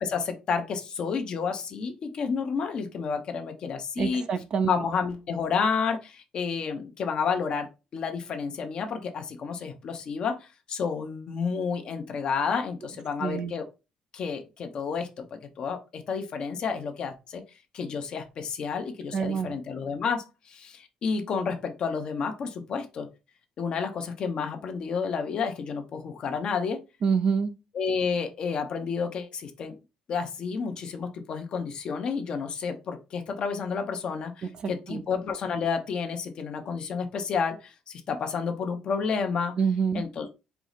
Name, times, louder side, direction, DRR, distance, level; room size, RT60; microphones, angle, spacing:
voice 1, 0.0-4.2 4.6-7.7 7.9-13.6 14.1-17.4 17.7-23.1 23.6-26.8 27.7-29.7 30.1-39.5 39.9-40.3, left 5 dB, 45° left, 0.8 m, -30 dB
voice 2, 4.0-4.7 13.2-13.5 19.1-19.5 27.0-27.5 34.9-35.0 39.6-40.0, right 6 dB, 45° right, 0.4 m, -26 dB
4.6 x 2.0 x 3.9 m
cardioid pair, 145°, 2 cm